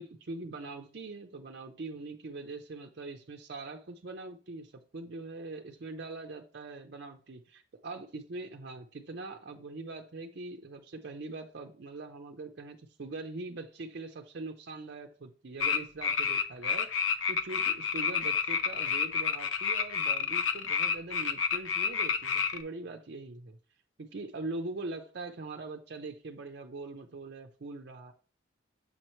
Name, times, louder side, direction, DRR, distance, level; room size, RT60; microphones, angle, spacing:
voice 1, 0.0-23.6 24.0-28.1, right 3 dB, 55° right, 4 dB, 0.6 m, -42 dB
sound 1, 15.6-22.6, left 6 dB, 85° left, 0.5 m, -29 dB
7.1 x 4.4 x 3.0 m, 0.39 s
head